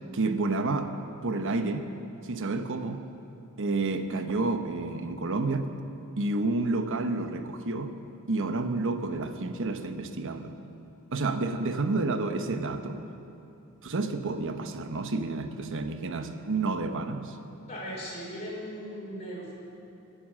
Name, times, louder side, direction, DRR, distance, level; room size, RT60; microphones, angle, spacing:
voice 1, 0.1-1.0 1.2-1.9 2.2-3.0 3.6-5.7 6.2-7.9 8.3-10.5 11.1-13.0 13.8-17.4, right 3 dB, 60° right, 8 dB, 0.9 m, -30 dB
voice 2, 17.6-19.5, equal, 30° left, -6 dB, 5.1 m, -38 dB
19.0 x 10.0 x 7.4 m, 2.8 s
head